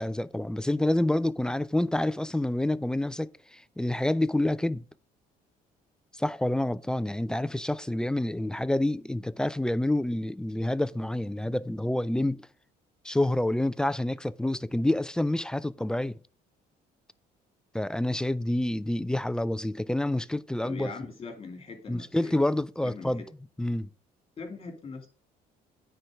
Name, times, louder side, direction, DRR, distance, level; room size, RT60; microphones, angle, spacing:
voice 1, 0.0-4.8 6.2-12.5 13.0-16.2 17.7-20.9 21.9-23.2 23.6-23.9, left 1 dB, 5° left, 0.3 m, -28 dB
voice 2, 20.6-22.4 22.8-23.3 24.4-25.1, left 4 dB, 35° left, 2.5 m, -41 dB
9.6 x 4.6 x 4.9 m
cardioid pair, 110°, 17 cm